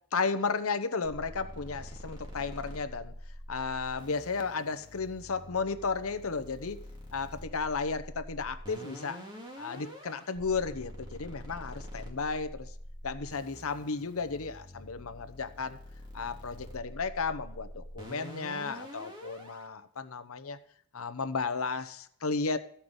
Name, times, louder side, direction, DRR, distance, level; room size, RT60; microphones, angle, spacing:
voice 1, 0.1-3.1 3.5-6.8 7.1-9.2 9.6-12.7 13.0-15.8 16.1-20.6 20.9-22.6, left 4 dB, 80° left, 11 dB, 0.9 m, -34 dB
sound 1, 1.1-19.6, equal, 20° right, 2.1 m, -46 dB
15.0 x 5.8 x 8.0 m, 0.64 s
head